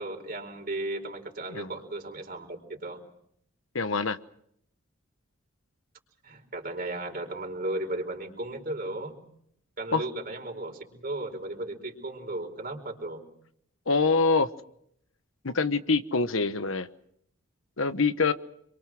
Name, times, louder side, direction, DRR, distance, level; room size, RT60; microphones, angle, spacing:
voice 1, 0.0-3.0 6.2-9.2 9.8-13.2, right 2 dB, 45° right, 4 dB, 4.6 m, -35 dB
voice 2, 3.7-4.2 9.9-10.0 13.9-14.5 15.4-16.9 17.8-18.3, left 4 dB, 75° left, 11 dB, 1.2 m, -25 dB
27.5 x 23.5 x 6.2 m, 0.70 s
head